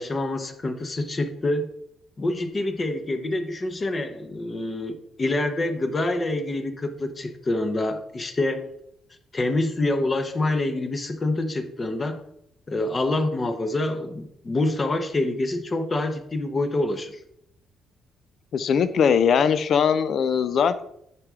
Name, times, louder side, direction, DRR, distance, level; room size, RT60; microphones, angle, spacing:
voice 1, 0.0-1.7 2.2-8.7 9.3-12.2 12.7-17.2, left 2 dB, 25° left, 7 dB, 0.9 m, -26 dB
voice 2, 18.5-20.8, left 7 dB, 55° left, 13 dB, 0.6 m, -20 dB
9.6 x 5.0 x 3.7 m, 0.75 s
cardioid pair, 120°, 0 cm